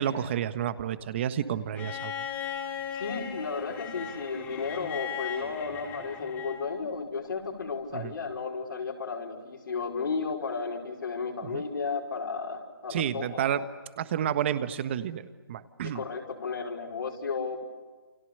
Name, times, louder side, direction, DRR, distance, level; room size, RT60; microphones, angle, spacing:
voice 1, 0.0-2.3 7.9-8.1 11.4-11.6 12.9-13.7 14.0-16.0, right 9 dB, 30° right, 12 dB, 1.5 m, -30 dB
Bowed string instrument, 1.7-6.8 8.2-8.3, left 8 dB, 15° left, 2.8 m, -38 dB
voice 2, 2.9-13.4 15.9-17.6, left 5 dB, 65° left, -1 dB, 5.4 m, -33 dB
29.5 x 27.5 x 6.9 m, 1.4 s
hypercardioid pair, 160°, 12 cm